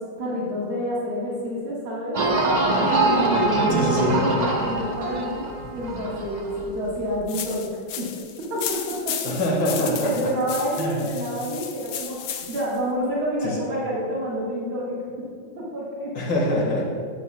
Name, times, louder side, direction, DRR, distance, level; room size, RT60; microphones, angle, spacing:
voice 1, 0.0-2.2 3.0-7.7 8.0-8.1 8.4-9.3 9.7-9.8 10.0-15.3 15.6-16.1, equal, 90° right, -7 dB, 2.7 m, -28 dB
sound 1, 2.1-6.7 7.1-7.2, right 2 dB, 40° right, 0.6 m, -23 dB
voice 2, 3.7-4.2 9.2-10.3 10.8-11.0 13.4-13.6 16.2-16.8, left 1 dB, 65° left, -3 dB, 2.6 m, -24 dB
sound 2, 7.3-12.8, left 8 dB, 85° left, 1.5 m, -34 dB
12.0 x 9.5 x 2.4 m, 2.1 s
omnidirectional pair, 2.2 m